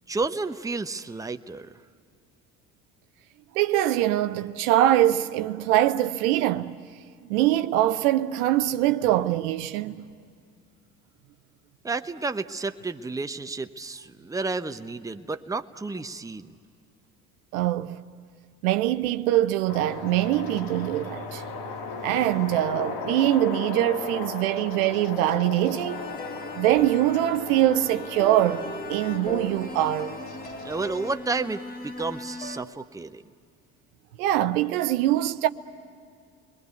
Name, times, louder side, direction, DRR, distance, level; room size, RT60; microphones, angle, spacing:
voice 1, 0.1-1.7 11.8-16.6 30.6-33.2, right 3 dB, 5° right, 0.9 m, -31 dB
voice 2, 3.5-6.8 7.3-10.0 17.5-18.0 18.6-21.4 22.0-26.1 26.6-30.1 34.2-35.5, right 13 dB, 70° right, 0.8 m, -23 dB
sound 1, 19.7-31.1, left 3 dB, 70° left, 3.9 m, -36 dB
sound 2, 25.9-32.6, left 2 dB, 20° left, 1.7 m, -38 dB
30.0 x 22.5 x 8.3 m
figure-of-eight pair, 60°, 46 cm